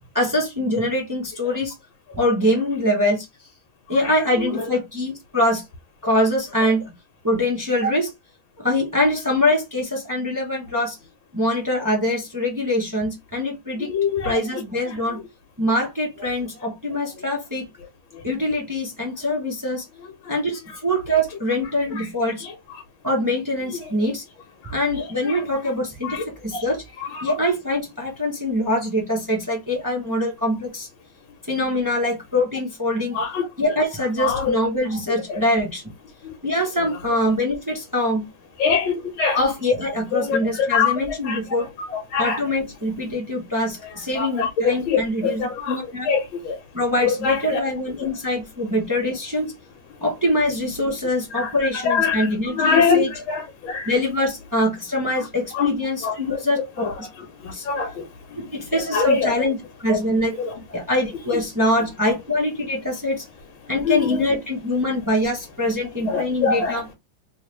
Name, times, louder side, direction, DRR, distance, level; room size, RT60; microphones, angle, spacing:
voice 1, 0.1-1.7 2.1-3.3 3.9-5.6 6.0-6.8 7.2-8.1 8.6-11.0 11.3-13.9 14.2-15.2 15.6-17.7 18.2-19.8 20.3-22.4 23.0-24.2 24.7-26.8 27.2-30.9 31.5-33.2 33.6-35.8 36.4-38.3 39.3-41.7 42.2-46.1 46.7-49.5 50.0-53.1 53.9-57.1 57.5-57.7 58.4-60.4 60.7-63.2 63.7-66.9, left 1 dB, 25° right, 0.4 m, -23 dB
voice 2, 13.8-14.4 25.3-25.4 26.1-26.2 26.5-26.6 27.1-27.2 33.1-33.5 34.2-34.5 35.1-35.4 36.2-36.3 38.6-39.4 40.2-40.9 41.2-41.4 42.1-42.4 44.1-45.8 46.1-46.6 47.0-47.6 48.0-48.1 51.4-51.5 51.8-52.3 52.6-53.9 55.5-55.7 56.0-56.4 56.8-56.9 57.4-58.1 58.9-59.3 59.9-60.0 60.4-60.5 63.8-64.1 66.1-66.8, left 5 dB, 80° left, 1.6 m, -23 dB
3.3 x 3.1 x 3.1 m
omnidirectional pair, 2.2 m